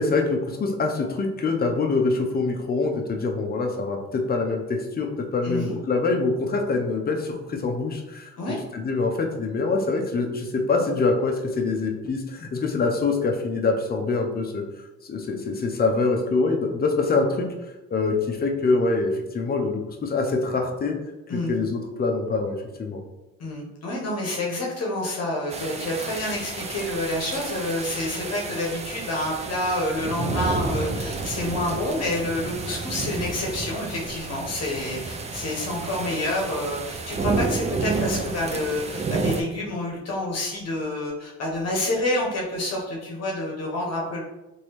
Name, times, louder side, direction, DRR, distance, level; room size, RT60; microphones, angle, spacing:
voice 1, 0.0-8.3 8.7-14.6 15.0-17.5 17.9-20.9 21.3-23.0, left 3 dB, 30° left, 2 dB, 0.6 m, -25 dB
voice 2, 5.4-5.8 8.4-8.6 21.3-21.5 23.4-44.2, left 1 dB, 55° left, -2 dB, 0.9 m, -28 dB
sound 1, 25.5-39.4, right 3 dB, 25° right, 0.3 m, -30 dB
3.1 x 2.7 x 3.0 m, 1.0 s
cardioid pair, 90°, 30 cm